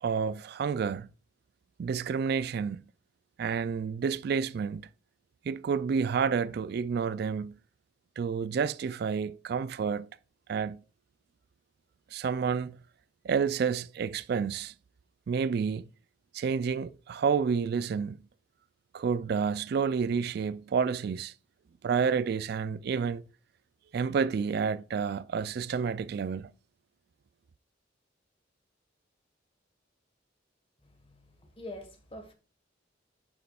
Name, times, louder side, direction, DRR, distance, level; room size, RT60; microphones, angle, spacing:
voice 1, 0.0-1.1 1.8-2.8 3.4-4.9 5.5-7.6 8.2-10.1 10.5-10.8 12.1-12.8 13.2-14.7 15.3-15.9 16.3-18.2 18.9-21.3 21.8-23.2 23.9-26.5, right 6 dB, 55° right, 0.3 m, -29 dB
voice 2, 31.0-32.3, left 1 dB, 30° left, 1.4 m, -45 dB
9.3 x 6.7 x 2.3 m
head